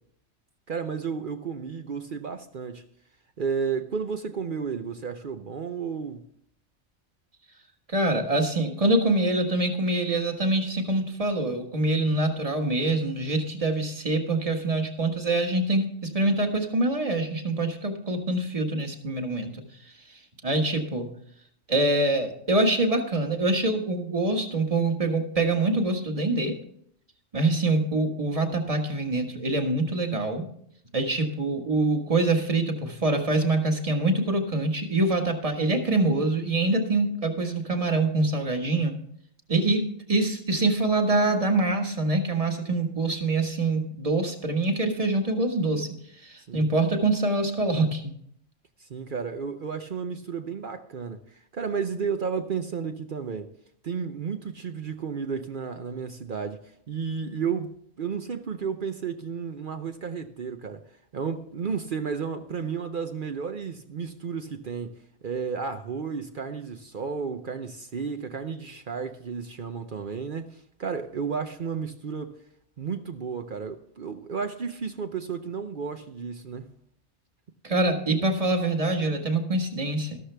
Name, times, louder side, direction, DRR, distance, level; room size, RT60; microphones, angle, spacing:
voice 1, 0.7-2.8 3.4-6.2 46.5-46.7 48.8-53.5 53.8-56.6 56.9-60.8 61.1-72.4 72.8-76.7, right 6 dB, 50° right, 0.7 m, -32 dB
voice 2, 7.9-19.6 20.1-21.1 21.7-26.6 27.3-30.5 30.9-38.9 39.5-45.9 46.2-48.1 77.6-80.2, right 2 dB, 30° right, 1.5 m, -25 dB
13.0 x 12.0 x 3.4 m
omnidirectional pair, 1.3 m